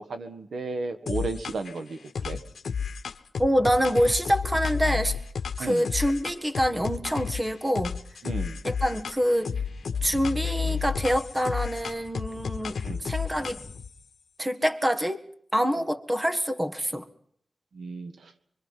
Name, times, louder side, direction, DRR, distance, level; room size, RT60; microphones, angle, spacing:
voice 1, 0.0-2.4 5.6-5.8 8.2-8.6 12.8-13.0 17.7-18.3, right 3 dB, 85° right, 8 dB, 1.7 m, -34 dB
sound 1, 1.1-1.8 2.1-7.4 7.7-9.2 9.4-13.9, left 6 dB, 80° left, 1.0 m, -32 dB
voice 2, 3.4-5.2 5.6-8.0 8.6-9.5 10.0-13.6 14.4-15.2 15.5-17.1, equal, 15° right, 8 dB, 1.6 m, -26 dB
Speech / Wind, 9.2-14.1, left 1 dB, 15° left, 1.7 m, -50 dB
24.5 x 24.5 x 5.8 m, 0.65 s
wide cardioid pair, 90°, 0 cm